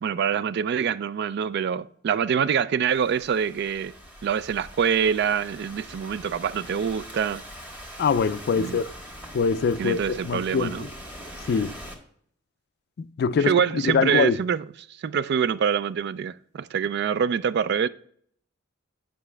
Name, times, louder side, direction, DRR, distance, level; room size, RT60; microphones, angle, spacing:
voice 1, 0.0-3.9 4.2-7.4 8.6-8.8 9.8-10.9 13.4-14.6 15.0-17.9, right 7 dB, 55° right, 0.3 m, -25 dB
Thunderstorm / Rain, 2.9-11.9, equal, 10° right, 1.4 m, -43 dB
voice 2, 8.0-8.9 9.3-10.9 11.5-11.7 13.0-14.4, left 5 dB, 55° left, 0.3 m, -24 dB
9.5 x 5.2 x 3.3 m
head